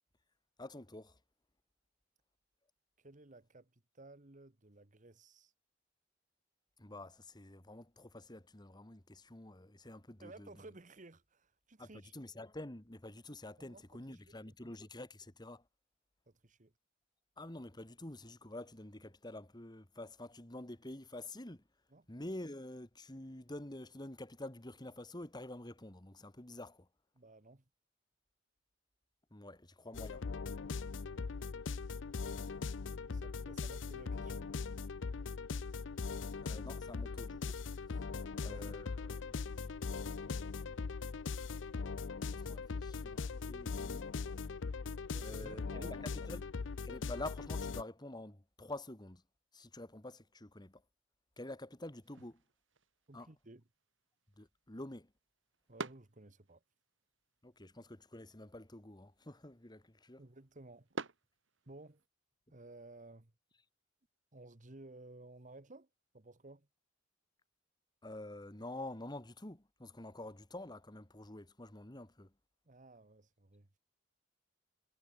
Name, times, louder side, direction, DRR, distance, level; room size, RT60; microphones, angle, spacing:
voice 1, 0.6-1.2 6.8-10.5 11.8-15.6 17.4-21.6 22.1-26.9 29.3-30.3 36.4-37.6 37.9-38.1 38.4-40.8 42.3-44.1 45.2-46.4 46.8-49.2 49.5-50.8 51.4-52.4 53.1-53.3 54.4-55.1 57.4-60.2 68.0-72.3, left 1 dB, 20° left, 2.0 m, -48 dB
voice 2, 3.0-5.5 10.2-12.1 13.6-14.4 16.3-16.7 21.9-22.1 27.1-27.6 30.9-31.5 33.0-34.5 38.1-38.5 45.1-46.0 53.1-53.6 55.7-56.6 60.2-60.9 61.7-62.0 62.5-63.3 64.3-65.9 66.1-66.7 72.6-73.7, right 2 dB, 40° right, 1.5 m, -56 dB
sound 1, 29.9-47.8, left 4 dB, 70° left, 0.5 m, -40 dB
sound 2, 52.0-62.1, right 3 dB, 75° right, 2.0 m, -52 dB
head